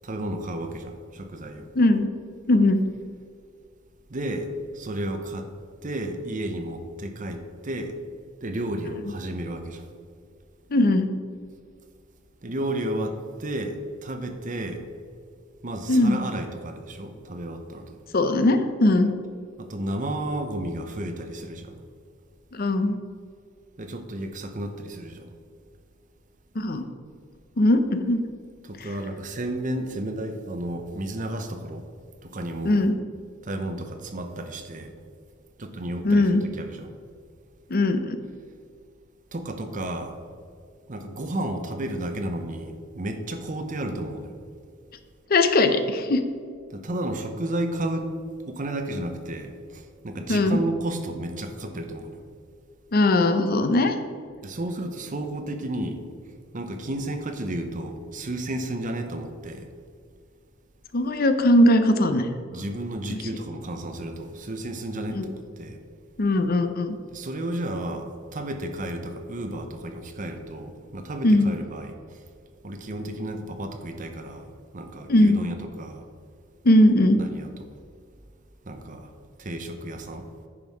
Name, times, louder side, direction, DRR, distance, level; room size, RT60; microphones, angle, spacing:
voice 1, 0.0-1.7 4.1-5.5 5.8-7.9 8.4-9.8 12.4-14.8 15.6-18.0 19.6-21.8 23.8-25.3 28.6-31.9 32.2-32.8 33.4-34.9 35.6-37.0 39.3-40.2 40.9-44.3 46.7-48.1 48.5-52.2 54.4-56.0 56.5-59.7 62.5-65.8 67.1-72.0 72.6-76.1 77.2-77.7 78.6-79.1 79.4-80.3, right 1 dB, 40° right, 6 dB, 0.8 m, -32 dB
voice 2, 1.8-2.1 2.5-2.8 10.7-11.1 15.9-16.2 18.1-19.1 22.5-23.0 26.6-26.8 27.6-28.2 32.6-32.9 36.0-36.4 37.7-38.2 45.3-46.2 50.3-50.6 52.9-54.0 60.9-62.3 63.1-63.2 65.1-65.3 66.2-67.0 71.2-71.5 75.1-75.4 76.6-77.2, left 1 dB, 50° left, 8 dB, 0.6 m, -19 dB
9.8 x 5.5 x 4.8 m, 2.2 s
head